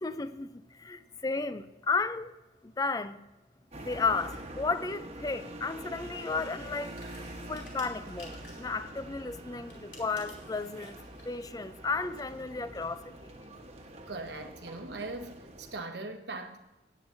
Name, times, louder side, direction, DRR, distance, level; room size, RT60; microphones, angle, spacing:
voice 1, 0.0-2.3 2.6-3.2 3.8-6.9 7.5-11.0 11.2-13.2, left 4 dB, 20° left, 0.4 m, -33 dB
sound 1, 3.7-15.8, right 1 dB, 35° right, 1.2 m, -45 dB
sound 2, 6.7-8.8 9.6-11.4, left 3 dB, 65° left, 3.0 m, -54 dB
voice 2, 14.1-16.6, right 2 dB, 65° right, 1.1 m, -40 dB
16.5 x 8.7 x 2.7 m
head